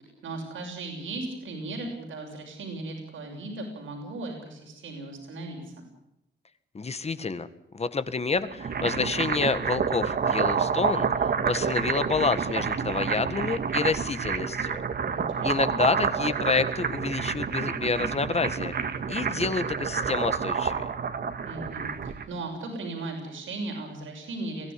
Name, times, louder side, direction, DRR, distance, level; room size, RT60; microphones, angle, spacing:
voice 1, 0.2-5.9 15.0-15.8 21.4-24.7, right 2 dB, 85° right, 2 dB, 6.6 m, -37 dB
voice 2, 6.7-7.5 7.7-14.8 15.4-18.7 19.1-20.9, left 4 dB, 35° left, 13 dB, 1.6 m, -28 dB
sound 1, 8.4-22.3, right 6 dB, 55° right, 1.7 m, -28 dB
22.5 x 15.5 x 9.8 m, 0.84 s
cardioid pair, 105°, 20 cm